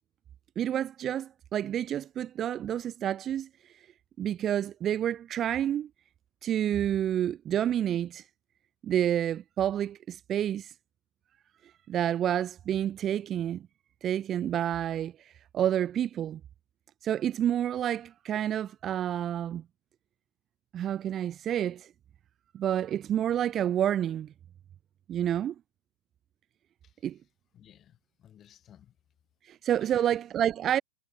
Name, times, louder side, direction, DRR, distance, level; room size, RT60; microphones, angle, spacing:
voice 1, 0.6-3.5 4.2-5.9 6.4-8.2 8.8-10.7 11.9-13.7 14.0-16.4 17.0-19.6 20.7-21.9 22.5-24.3 25.1-25.5 27.0-27.2 29.4-30.8, right 10 dB, 25° right, 0.3 m, -29 dB
voice 2, 27.5-29.0 29.8-30.2, left 10 dB, 25° left, 6.5 m, -58 dB
supercardioid pair, 140°, 0 cm